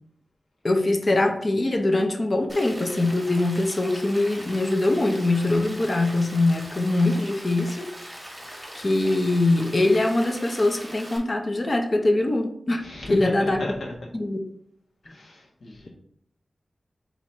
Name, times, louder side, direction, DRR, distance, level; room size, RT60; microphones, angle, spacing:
voice 1, 0.6-7.9 8.7-12.8 13.1-13.8 14.1-14.4, left 2 dB, 35° left, 5 dB, 0.6 m, -23 dB
Rain, 2.5-11.2, equal, 5° right, 1.3 m, -41 dB
voice 2, 12.8-14.1 15.0-15.9, left 1 dB, 70° left, -2 dB, 1.3 m, -34 dB
4.0 x 3.0 x 4.3 m, 0.67 s
wide cardioid pair, 110°, 0 cm